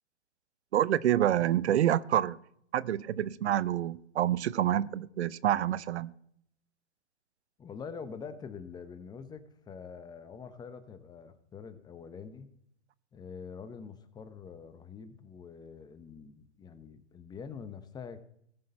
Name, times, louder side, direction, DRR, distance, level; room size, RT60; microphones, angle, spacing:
voice 1, 0.7-2.4 2.7-6.1, right 11 dB, 70° right, 19 dB, 0.7 m, -27 dB
voice 2, 7.6-12.5 13.1-18.2, left 6 dB, 10° left, 11 dB, 0.9 m, -45 dB
18.5 x 6.3 x 4.2 m, 0.69 s
hypercardioid pair, 130°, 35 cm